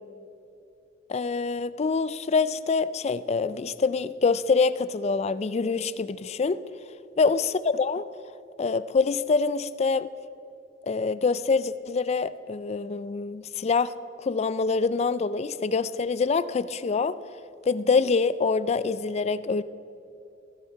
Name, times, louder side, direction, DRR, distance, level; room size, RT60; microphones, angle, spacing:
voice 1, 1.1-6.6 7.2-8.0 8.6-10.1 10.8-17.2 17.7-19.6, left 4 dB, 35° left, 15 dB, 0.4 m, -25 dB
15.5 x 11.0 x 4.5 m, 2.8 s
head